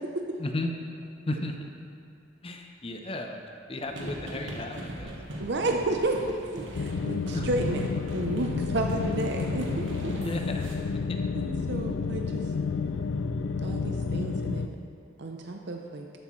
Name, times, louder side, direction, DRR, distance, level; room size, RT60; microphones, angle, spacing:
voice 1, 0.4-0.7 1.3-1.6 2.4-3.4 3.7-5.2 7.3-7.5 10.2-10.6 11.1-11.3, left 2 dB, 30° left, 3 dB, 0.7 m, -34 dB
sound 1, 3.9-10.8, right 1 dB, 80° right, 1.3 m, -39 dB
voice 2, 5.4-7.8 8.1-10.1 11.3-12.5 13.6-14.8 15.2-16.1, right 2 dB, 60° right, 2 dB, 0.6 m, -31 dB
sound 2, 6.7-14.7, left 4 dB, 75° left, 0.4 m, -30 dB
13.0 x 8.2 x 3.2 m, 2.4 s
head